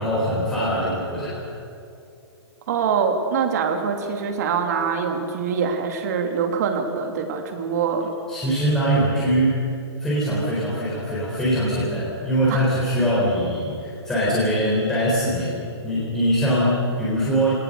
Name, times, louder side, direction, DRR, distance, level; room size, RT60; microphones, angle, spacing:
voice 1, 0.0-1.5 8.3-9.6 10.0-17.5, equal, 5° left, -8 dB, 4.0 m, -22 dB
voice 2, 2.7-8.1 12.5-12.6, right 6 dB, 40° right, 4 dB, 2.8 m, -24 dB
25.5 x 19.0 x 6.7 m, 2.6 s
hypercardioid pair, 170°, 14 cm